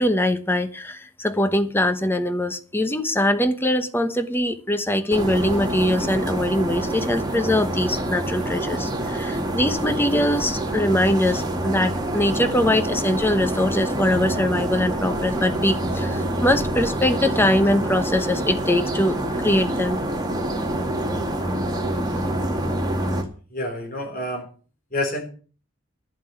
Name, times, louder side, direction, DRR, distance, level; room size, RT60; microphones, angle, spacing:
voice 1, 0.0-19.1 19.4-20.0, left 1 dB, 10° left, 9 dB, 1.0 m, -22 dB
sound 1, 5.1-23.2, right 1 dB, 20° right, 1.9 m, -26 dB
voice 2, 23.5-24.5 24.9-25.3, left 1 dB, 45° left, 4 dB, 3.8 m, -28 dB
11.0 x 7.4 x 7.6 m, 0.39 s
head